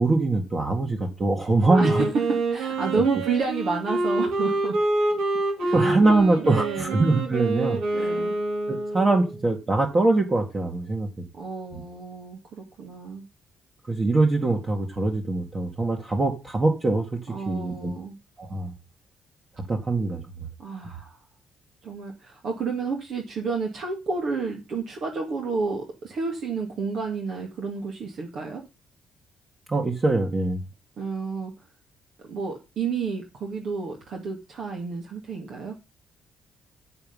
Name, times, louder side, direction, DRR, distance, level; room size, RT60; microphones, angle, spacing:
voice 1, 0.0-2.1 5.7-8.1 8.7-11.2 13.9-17.2 17.5-17.9 18.4-18.7 19.6-20.2 29.7-30.6, right 2 dB, 30° right, 0 dB, 1.8 m, -23 dB
Wind instrument woodwind instrument, 1.6-9.4, right 2 dB, 90° right, 4.0 m, -27 dB
voice 2, 1.7-4.8 5.6-5.9 6.4-6.9 7.9-8.4 11.3-13.2 17.3-18.1 20.6-21.2 21.8-28.6 31.0-31.5 32.3-35.8, right 4 dB, 70° right, 1 dB, 2.2 m, -30 dB
7.9 x 7.1 x 5.4 m, 0.28 s
cardioid pair, 90°, 0 cm